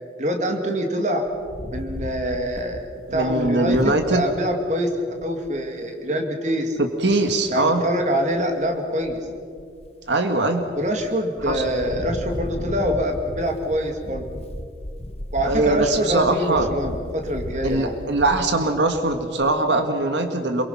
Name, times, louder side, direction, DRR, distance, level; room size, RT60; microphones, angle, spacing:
voice 1, 0.2-1.2 1.7-4.9 5.2-6.8 7.5-9.2 10.7-14.3 15.3-17.9, equal, 40° right, 4 dB, 2.5 m, -25 dB
Wind, 1.3-4.4 4.9-5.0 5.2-5.6 7.0-7.6 8.2-8.7 9.0-10.1 10.6-11.1 11.4-19.6, left 1 dB, 35° left, 0.9 m, -35 dB
voice 2, 3.1-4.2 6.8-7.8 10.1-10.6 11.5-11.6 15.4-16.7 17.6-20.6, right 2 dB, 85° right, 6 dB, 1.7 m, -21 dB
27.5 x 23.0 x 5.9 m, 2.3 s
head